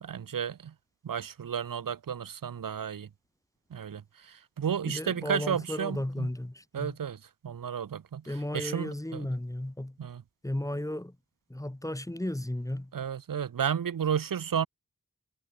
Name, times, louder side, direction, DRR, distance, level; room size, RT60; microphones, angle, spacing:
voice 1, 0.0-0.7 1.0-3.1 3.7-4.0 4.3-6.3 6.7-7.2 7.4-8.2 8.5-9.3 10.0-10.2 12.9-14.7, right 8 dB, 85° right, 0.7 m, -32 dB
voice 2, 4.9-7.0 8.3-10.0 10.4-11.1 11.5-12.9, left 1 dB, 10° left, 1.0 m, -34 dB
wide cardioid pair, 65°, 32 cm